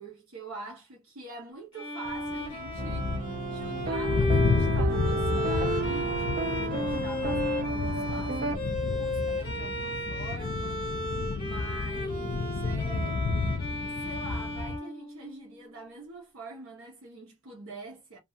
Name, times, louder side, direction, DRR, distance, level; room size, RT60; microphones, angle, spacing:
voice 1, 0.0-10.9 11.4-13.2 13.8-18.2, right 3 dB, 75° right, 1.0 m, -45 dB
Bowed string instrument, 1.7-15.6, left 1 dB, 25° left, 0.8 m, -35 dB
sound 1, 2.1-14.8, left 3 dB, 55° left, 0.4 m, -31 dB
sound 2, 2.8-8.6, right 3 dB, 40° right, 0.3 m, -32 dB
2.5 x 2.4 x 2.7 m
head